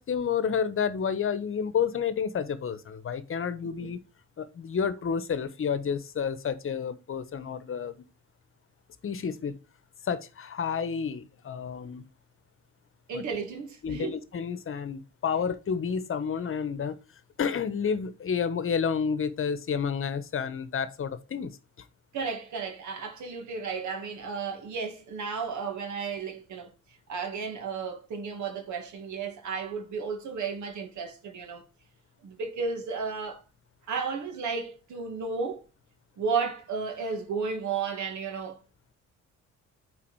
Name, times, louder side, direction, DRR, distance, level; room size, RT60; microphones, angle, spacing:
voice 1, 0.0-4.0 4.4-8.0 9.0-9.6 10.0-12.1 13.1-13.2 13.8-17.0 17.4-21.6, left 6 dB, 45° left, 1.0 m, -30 dB
voice 2, 13.1-14.1 22.1-26.7 27.1-31.6 32.2-33.4 33.9-35.6 36.2-38.6, right 5 dB, 75° right, 1.9 m, -33 dB
8.6 x 4.2 x 4.6 m
cardioid pair, 90°, 30 cm